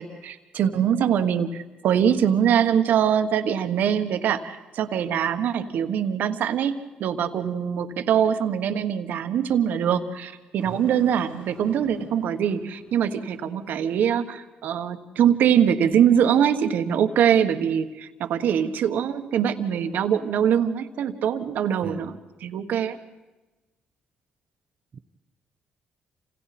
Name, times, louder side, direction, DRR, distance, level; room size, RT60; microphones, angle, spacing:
voice 1, 0.0-22.1 22.4-23.0, right 8 dB, 70° right, 1.4 m, -23 dB
Engine starting, 10.6-13.6, left 2 dB, 60° left, 5.4 m, -48 dB
voice 2, 10.6-10.8 21.8-22.1 24.9-25.0, right 6 dB, 45° right, 1.0 m, -40 dB
28.5 x 27.0 x 4.3 m
cardioid pair, 90°, 3 cm